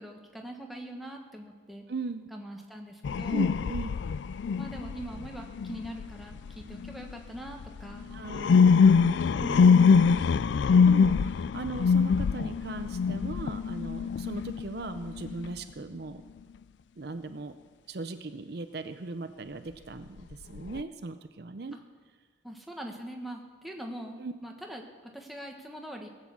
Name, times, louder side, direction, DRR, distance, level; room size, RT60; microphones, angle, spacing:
voice 1, 0.0-1.8 2.3-3.6 4.6-8.2 9.4-10.0 21.7-21.8 22.4-26.1, equal, ahead, 1 dB, 1.3 m, -42 dB
voice 2, 1.9-2.3 3.3-4.0 8.1-9.3 10.4-10.5 10.9-16.2 17.0-17.5 17.9-21.8 24.2-24.3, right 3 dB, 55° right, 9 dB, 0.6 m, -38 dB
sound 1, 3.0-7.1 7.6-15.5 20.3-20.8, left 5 dB, 70° left, 0.3 m, -24 dB
18.0 x 8.3 x 7.2 m, 1.5 s
head